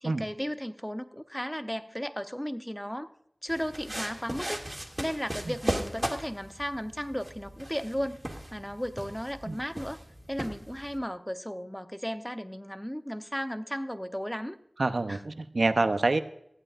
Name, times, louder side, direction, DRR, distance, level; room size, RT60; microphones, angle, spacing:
voice 1, 0.0-3.1 3.4-8.2 8.5-10.0 10.3-14.6 15.1-15.2, equal, 5° left, 9 dB, 0.9 m, -35 dB
sound 1, 3.5-11.0, right 1 dB, 20° right, 2.5 m, -37 dB
voice 2, 14.8-16.2, right 2 dB, 75° right, 9 dB, 0.8 m, -26 dB
17.5 x 14.5 x 2.6 m, 0.74 s
wide cardioid pair, 45°, 0 cm